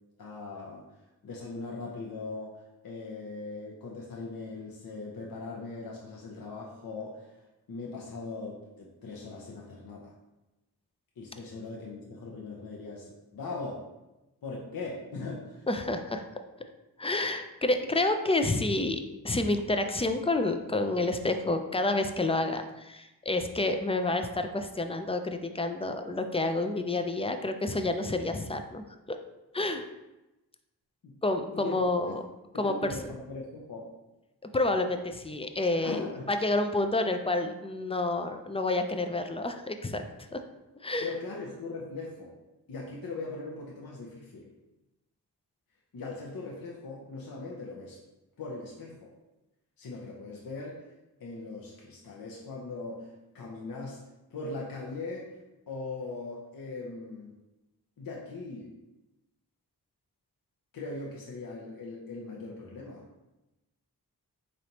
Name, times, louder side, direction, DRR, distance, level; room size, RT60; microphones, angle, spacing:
voice 1, 0.2-0.9 1.2-7.3 7.7-10.1 11.2-13.9 14.4-15.6 31.0-31.2 31.5-32.1 32.5-33.9 35.7-36.3 41.0-42.4 42.7-44.5 45.9-48.0 48.4-49.1 49.8-50.9 51.2-54.1 54.3-55.4 55.7-57.4 58.0-58.8 60.7-63.1, left 3 dB, 60° left, -3 dB, 0.7 m, -40 dB
voice 2, 15.7-16.3 17.0-28.8 29.5-29.9 31.2-32.2 32.6-32.7 34.5-40.0 40.3-40.4 40.8-41.1, left 2 dB, 15° left, 7 dB, 0.3 m, -29 dB
4.0 x 3.2 x 2.8 m, 1.0 s
cardioid pair, 40°, 40 cm